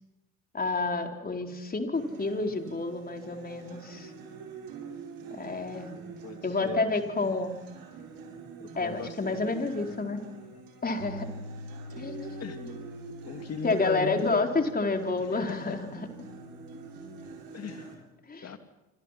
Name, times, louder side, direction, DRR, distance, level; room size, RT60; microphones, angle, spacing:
voice 1, 0.5-4.1 5.3-5.9 6.4-7.5 8.8-10.2 10.8-11.3 12.0-12.7 13.6-16.1 18.3-18.5, left 3 dB, 20° left, 3 dB, 4.5 m, -29 dB
Acoustic guitar, 1.9-17.9, right 5 dB, 60° right, 7.8 m, -46 dB
voice 2, 6.2-6.9 8.8-9.4 12.4-12.6 13.2-14.4 15.3-15.8 17.5-18.0 18.4-18.6, left 6 dB, 40° left, 7 dB, 3.0 m, -37 dB
sound 1, 11.0-17.3, left 1 dB, 90° right, 5.8 m, -46 dB
28.0 x 26.0 x 6.0 m, 1.0 s
hypercardioid pair, 70°, 40 cm